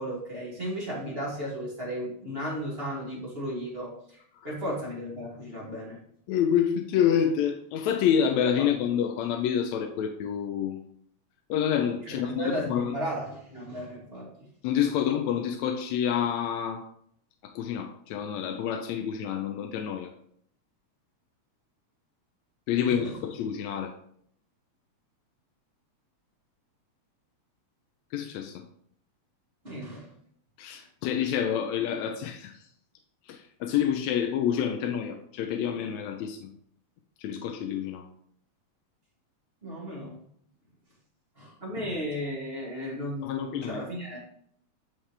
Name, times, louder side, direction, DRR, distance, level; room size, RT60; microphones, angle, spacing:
voice 1, 0.0-4.2 4.4-6.0 8.6-8.7 12.1-14.5 22.8-23.2 29.6-30.1 30.7-30.8 39.6-40.2 41.4-44.2, equal, 20° right, -5 dB, 2.5 m, -35 dB
voice 2, 6.3-10.8 11.5-12.9 14.6-16.8 17.4-20.1 22.7-23.9 28.1-28.5 30.6-32.5 33.3-36.5 37.2-38.0 43.2-43.8, left 8 dB, 80° left, 4 dB, 1.8 m, -28 dB
11.5 x 4.8 x 3.3 m, 0.66 s
omnidirectional pair, 3.4 m